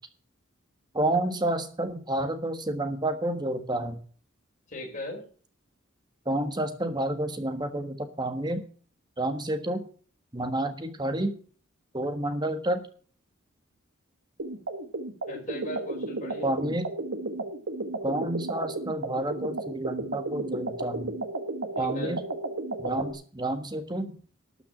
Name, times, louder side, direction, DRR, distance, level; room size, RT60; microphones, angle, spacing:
voice 1, 0.9-4.0 6.2-8.6 9.2-9.8 10.3-11.3 11.9-12.8 16.4-16.9 18.0-21.1 21.8-22.2 22.8-24.2, right 1 dB, 20° right, 8 dB, 1.5 m, -29 dB
voice 2, 4.7-5.2 15.3-16.6 21.7-22.2, left 1 dB, 40° left, 1 dB, 4.9 m, -38 dB
sound 1, 14.4-23.1, right 2 dB, 65° right, 1.4 m, -33 dB
12.5 x 5.8 x 8.6 m, 0.43 s
head